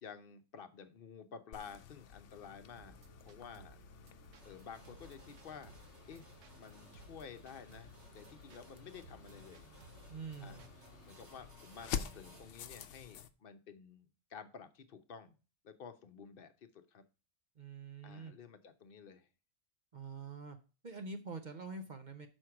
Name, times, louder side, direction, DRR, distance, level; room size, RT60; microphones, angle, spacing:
voice 1, 0.0-3.8 4.4-5.7 6.1-6.3 6.5-9.7 10.4-10.6 11.1-15.4 15.6-17.0 18.0-19.3, left 6 dB, 50° left, 10 dB, 0.9 m, -52 dB
sound 1, 1.5-13.3, left 8 dB, 80° left, 0.9 m, -49 dB
sound 2, 2.8-11.1, right 6 dB, 90° right, 1.2 m, -61 dB
sound 3, 4.4-12.5, right 2 dB, 65° right, 2.0 m, -62 dB
voice 2, 10.1-10.6 17.6-18.3 19.9-20.6 20.8-22.3, right 4 dB, 45° right, 7 dB, 0.7 m, -45 dB
6.3 x 4.4 x 5.7 m, 0.33 s
omnidirectional pair, 1.2 m